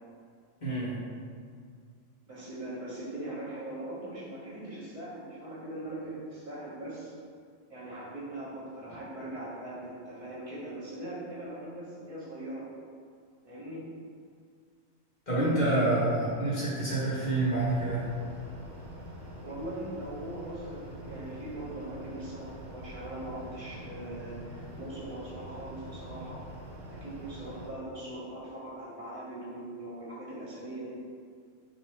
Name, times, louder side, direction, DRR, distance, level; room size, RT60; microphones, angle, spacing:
voice 1, 0.6-1.0 15.3-18.1, right 2 dB, 40° left, -9 dB, 0.8 m, -27 dB
voice 2, 2.3-7.1 7.7-12.7 13.4-13.9 19.4-26.4 26.9-30.9, right 1 dB, 30° right, -8 dB, 0.9 m, -41 dB
sound 1, 17.2-27.7, right 1 dB, 60° right, 0.9 m, -45 dB
2.9 x 2.6 x 4.3 m, 2.1 s
omnidirectional pair, 1.4 m